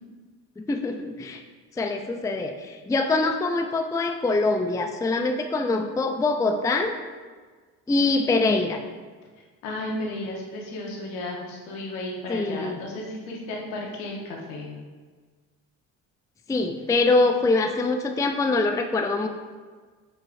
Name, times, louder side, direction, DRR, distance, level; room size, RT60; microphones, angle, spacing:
voice 1, 0.7-1.4 1.8-6.9 7.9-8.8 12.3-12.8 16.5-19.3, left 3 dB, 5° left, 5 dB, 0.4 m, -24 dB
voice 2, 9.6-14.7, left 1 dB, 75° left, -2 dB, 1.5 m, -34 dB
7.0 x 5.6 x 2.6 m, 1.5 s
hypercardioid pair, 55°, 48 cm